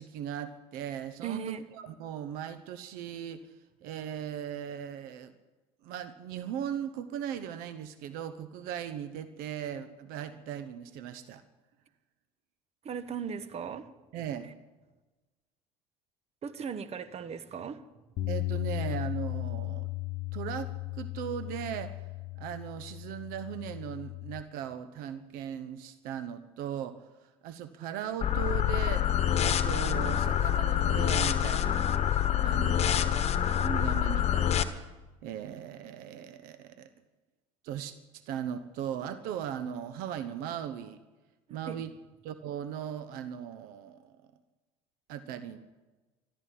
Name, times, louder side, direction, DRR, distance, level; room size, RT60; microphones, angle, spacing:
voice 1, 0.0-3.5 3.8-5.3 5.8-11.4 14.1-14.5 18.3-19.9 20.3-22.0 22.4-31.9 32.4-34.7 35.2-36.9 37.6-41.0 41.5-41.9 42.2-44.2 45.1-45.6, right 9 dB, 70° right, 12 dB, 1.0 m, -38 dB
voice 2, 1.2-1.6 12.8-13.9 16.4-17.8 41.6-41.8, right 7 dB, 45° right, 13 dB, 1.3 m, -37 dB
Bass guitar, 18.2-24.4, left 20 dB, 65° left, 0.8 m, -36 dB
sound 1, 28.2-34.6, left 10 dB, 45° left, 1.3 m, -26 dB
14.0 x 12.0 x 8.6 m, 1.2 s
hypercardioid pair, 75°, 16 cm